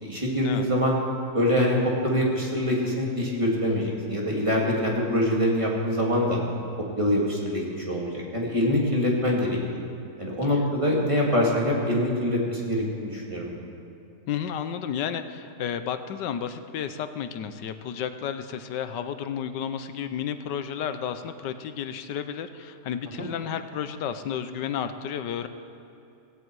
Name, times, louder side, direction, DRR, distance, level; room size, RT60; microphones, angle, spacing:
voice 1, 0.0-0.9 1.3-1.8 2.0-6.4 7.0-9.6 10.2-13.6 23.2-23.3, left 1 dB, 20° right, -3 dB, 2.4 m, -24 dB
voice 2, 14.3-25.5, left 8 dB, 85° left, 10 dB, 1.4 m, -32 dB
16.5 x 16.5 x 4.7 m, 2.7 s
omnidirectional pair, 1.8 m